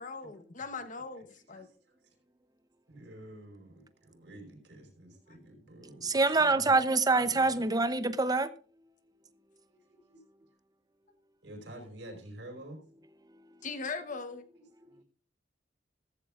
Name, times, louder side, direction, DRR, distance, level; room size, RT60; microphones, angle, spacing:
voice 1, 0.0-1.7 13.6-14.5, left 4 dB, 45° left, 1.1 m, -40 dB
voice 2, 1.2-2.1 2.9-6.7 7.2-7.9 9.7-10.2 11.4-12.8 14.8-15.0, right 1 dB, 70° right, 5.2 m, -49 dB
voice 3, 6.0-8.5, right 3 dB, 20° right, 0.8 m, -25 dB
15.5 x 14.5 x 2.5 m
head